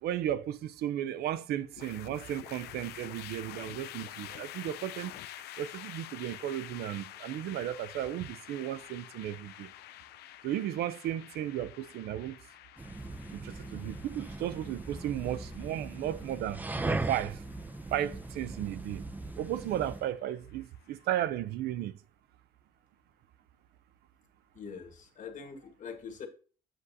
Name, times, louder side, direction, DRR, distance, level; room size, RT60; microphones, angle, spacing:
voice 1, 0.0-9.7 10.4-12.4 13.3-16.6 17.1-17.4 17.9-19.0 19.4-22.0, right 12 dB, 70° right, 0.5 m, -35 dB
sound 1, 1.8-21.0, left 13 dB, 75° left, 0.5 m, -49 dB
sound 2, 12.8-20.1, right 2 dB, 10° right, 0.4 m, -39 dB
voice 2, 24.5-26.3, left 6 dB, 50° left, 1.3 m, -43 dB
7.6 x 6.3 x 2.7 m
cardioid pair, 110°, 17 cm